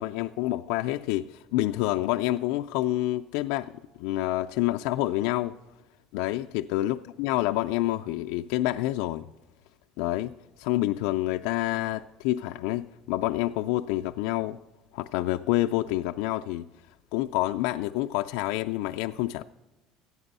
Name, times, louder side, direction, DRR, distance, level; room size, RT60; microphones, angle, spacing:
voice 1, 0.0-5.6 6.1-9.3 10.0-14.6 14.9-16.7 17.1-19.4, left 16 dB, 80° left, 0.3 m, -28 dB
14.5 x 9.6 x 5.4 m
cardioid pair, 150°, 0 cm